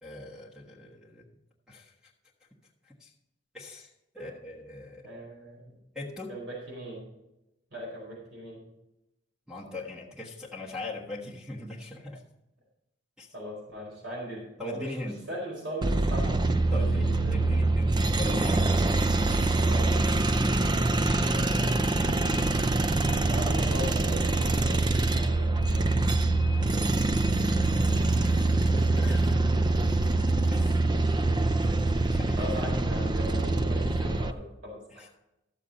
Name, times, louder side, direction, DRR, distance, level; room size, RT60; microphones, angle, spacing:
voice 1, 0.0-1.2 1.7-1.9 2.8-3.1 3.5-3.9 4.2-5.1 5.9-6.3 9.5-12.2 13.2-13.3 14.6-15.2 16.7-17.0 17.3-18.7 20.8-22.6 27.6-29.4 30.5-30.8 31.2-31.3 32.1-32.5 34.9-35.1, left 2 dB, 5° right, -3 dB, 1.4 m, -41 dB
voice 2, 5.0-5.8 6.3-7.0 7.7-8.6 13.3-16.4 16.7-17.6 19.6-20.0 23.2-26.1 31.7-31.8 32.4-34.8, equal, 70° right, -3 dB, 4.5 m, -39 dB
sound 1, 15.8-34.3, right 2 dB, 25° right, 0.4 m, -25 dB
13.5 x 7.2 x 4.0 m, 0.90 s
head